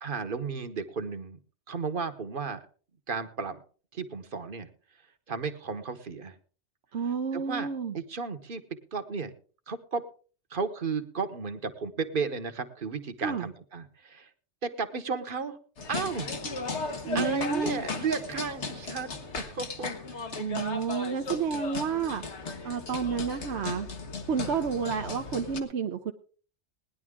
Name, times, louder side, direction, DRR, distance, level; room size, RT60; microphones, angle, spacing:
voice 1, 0.0-1.4 1.7-2.6 3.1-3.6 3.9-4.7 5.3-6.4 7.3-7.7 7.9-8.6 8.9-9.3 9.7-10.0 10.5-14.3 14.6-15.6 15.9-16.3 17.1-20.3, right 5 dB, 50° right, 9 dB, 1.3 m, -34 dB
voice 2, 6.9-8.0 13.2-13.5 17.1-17.8 20.4-22.2 22.6-23.9 24.2-26.1, right 6 dB, 75° right, 5 dB, 1.1 m, -30 dB
sound 1, 15.8-25.6, left 3 dB, 80° left, 1.8 m, -36 dB
19.0 x 10.5 x 3.7 m, 0.41 s
omnidirectional pair, 1.2 m